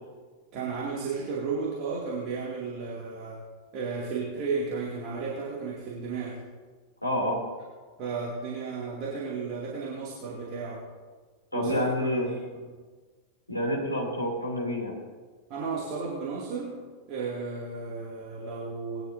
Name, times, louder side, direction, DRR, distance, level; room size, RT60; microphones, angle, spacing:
voice 1, 0.5-3.4 3.7-6.4 8.0-10.8 11.5-12.8 15.5-16.8 17.1-19.0, right 4 dB, 40° right, -5 dB, 2.5 m, -34 dB
voice 2, 7.0-7.4 11.5-12.3 13.5-14.9, equal, 85° left, -1 dB, 3.0 m, -28 dB
19.5 x 11.5 x 2.7 m, 1.4 s
figure-of-eight pair, 90°, 0 cm